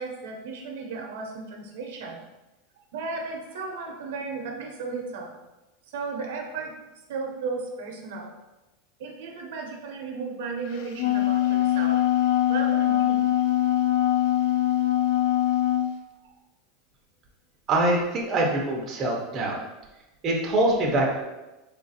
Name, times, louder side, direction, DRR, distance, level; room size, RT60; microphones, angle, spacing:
voice 1, 0.0-2.2 2.9-5.4 5.9-8.4 9.0-12.0 12.5-13.2 16.2-16.3, right 4 dB, 75° right, 2 dB, 0.7 m, -35 dB
Wind instrument woodwind instrument, 10.7-15.9, left 12 dB, 60° left, 0.3 m, -22 dB
voice 2, 17.7-19.6 20.2-21.2, right 1 dB, 25° right, -1 dB, 0.6 m, -24 dB
3.3 x 2.4 x 4.0 m, 1.0 s
supercardioid pair, 155°, 0 cm